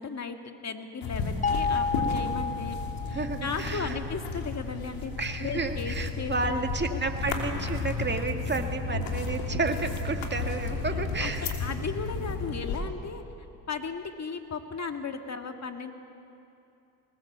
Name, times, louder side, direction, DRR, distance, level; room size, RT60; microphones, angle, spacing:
voice 1, 0.0-2.8 3.1-5.1 5.4-6.6 6.9-7.0 11.2-13.2 13.7-15.9, left 5 dB, 35° left, 6 dB, 2.0 m, -36 dB
sound 1, 1.0-12.8, left 4 dB, 70° left, 3.2 m, -33 dB
sound 2, 1.4-3.7, left 5 dB, 15° left, 0.5 m, -30 dB
voice 2, 3.1-4.0 5.2-11.5, right 3 dB, 20° right, 5 dB, 2.0 m, -31 dB
22.0 x 19.5 x 7.5 m, 2.7 s
supercardioid pair, 75°, 48 cm